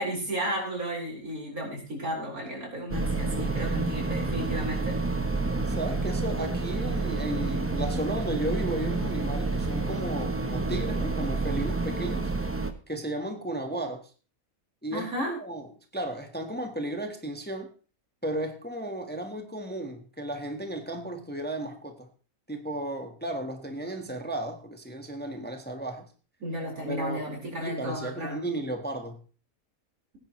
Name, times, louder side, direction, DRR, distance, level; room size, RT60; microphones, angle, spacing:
voice 1, 0.0-4.9 14.9-15.3 26.4-28.4, right 1 dB, 80° right, -1 dB, 5.0 m, -33 dB
sound 1, 2.9-12.7, right 3 dB, 10° right, 0.7 m, -29 dB
voice 2, 5.7-12.3 12.9-14.1 14.8-17.7 18.2-22.1 22.5-26.1 26.9-27.2 27.6-29.2, right 1 dB, 5° left, 5 dB, 1.2 m, -34 dB
18.5 x 9.9 x 3.1 m, 0.37 s
omnidirectional pair, 1.5 m